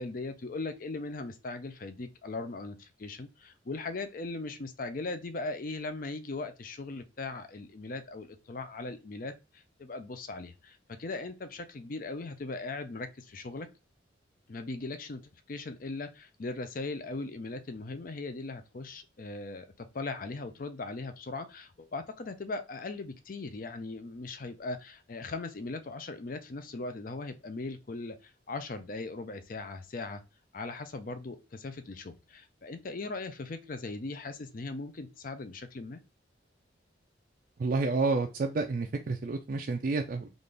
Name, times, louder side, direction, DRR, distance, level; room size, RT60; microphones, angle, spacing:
voice 1, 0.0-13.7 14.5-30.2 30.5-36.0, left 3 dB, 45° left, 0.5 m, -39 dB
voice 2, 37.6-40.3, right 3 dB, 45° right, 0.4 m, -29 dB
3.9 x 2.5 x 3.3 m
head